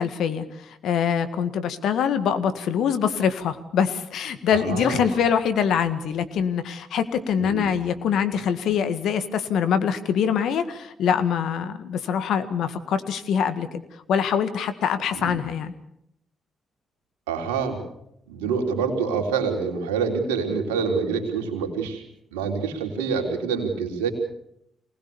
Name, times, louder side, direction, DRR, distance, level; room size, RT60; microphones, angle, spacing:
voice 1, 0.0-13.8 14.1-15.7, left 7 dB, 70° left, 11 dB, 1.8 m, -24 dB
voice 2, 4.5-5.1 7.4-7.7 15.1-15.4 17.3-17.8 18.3-22.0 22.3-24.1, right 5 dB, 90° right, 4 dB, 3.4 m, -26 dB
24.5 x 19.5 x 7.1 m, 0.76 s
hypercardioid pair, 45°, 0 cm